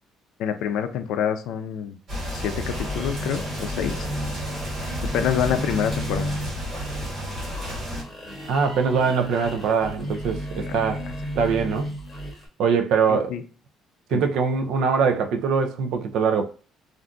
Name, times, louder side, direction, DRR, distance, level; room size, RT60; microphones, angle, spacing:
voice 1, 0.4-1.9 2.3-4.1 5.1-6.4 10.7-10.8 13.1-13.4 14.1-14.3, left 8 dB, 70° left, 0.4 m, -27 dB
sound 1, 2.1-8.0, equal, 45° right, 1.4 m, -32 dB
sound 2, 2.7-12.5, equal, 5° left, 0.9 m, -34 dB
voice 2, 8.5-11.0 11.4-11.9 12.6-13.3 14.1-16.5, right 5 dB, 65° right, 0.4 m, -22 dB
2.5 x 2.3 x 3.7 m
cardioid pair, 170°, 0 cm